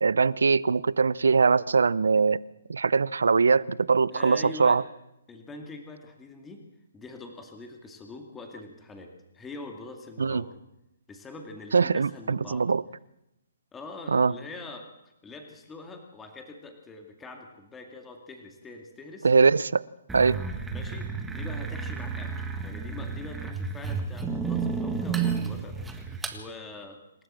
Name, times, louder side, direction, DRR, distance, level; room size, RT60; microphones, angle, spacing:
voice 1, 0.0-2.4 2.7-4.8 10.2-10.4 11.7-12.8 14.1-14.3 19.2-19.8 20.1-20.4, right 5 dB, 80° right, 0.6 m, -22 dB
voice 2, 4.1-4.8 5.3-6.6 6.9-10.6 11.1-12.7 13.7-14.9 15.2-19.3 20.7-27.0, left 3 dB, 10° left, 2.3 m, -44 dB
sound 1, 20.1-26.4, right 5 dB, 5° right, 1.7 m, -32 dB
27.0 x 12.5 x 7.6 m
hypercardioid pair, 145°, 0 cm